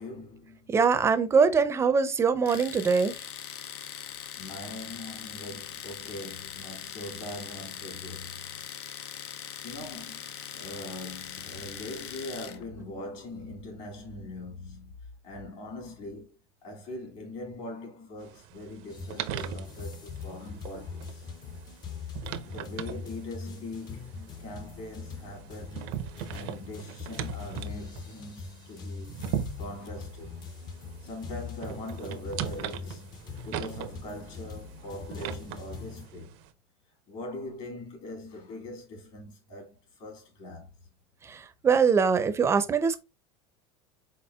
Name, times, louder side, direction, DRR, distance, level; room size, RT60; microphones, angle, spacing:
voice 1, 0.0-0.8 4.4-8.7 9.6-15.0 15.2-21.2 22.4-25.8 26.3-29.1 29.6-30.4 31.0-33.1 33.4-36.3 37.1-40.7, left 1 dB, 55° left, 2.2 m, -42 dB
voice 2, 0.7-3.1 41.2-43.0, right 5 dB, 20° right, 0.5 m, -23 dB
Domestic sounds home sounds, 2.5-12.6, left 9 dB, 80° left, 0.6 m, -41 dB
sound 1, 18.2-36.5, right 10 dB, 60° right, 0.6 m, -40 dB
sound 2, 18.9-36.1, left 5 dB, 30° left, 0.6 m, -42 dB
4.4 x 3.9 x 2.3 m
supercardioid pair, 125°, 14 cm